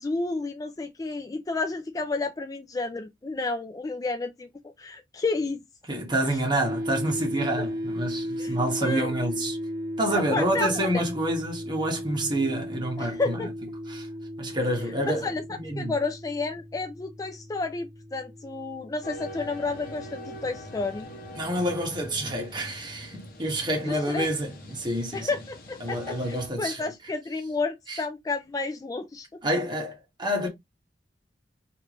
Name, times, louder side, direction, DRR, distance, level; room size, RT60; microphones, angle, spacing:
voice 1, 0.0-5.6 6.2-6.4 8.4-8.6 8.8-9.1 10.1-11.0 13.0-13.5 15.0-15.4 15.8-21.1 23.8-24.3 25.1-29.3, left 3 dB, 20° left, 0.3 m, -31 dB
voice 2, 5.9-9.6 10.0-13.5 13.9-14.1 14.4-15.9 21.3-25.3 25.8-26.9 27.9-28.0 29.4-30.5, right 1 dB, 25° right, 1.1 m, -28 dB
sound 1, 6.6-21.9, equal, 50° right, 1.0 m, -36 dB
sound 2, 19.0-26.5, equal, 55° left, 0.8 m, -43 dB
3.3 x 2.5 x 3.0 m
head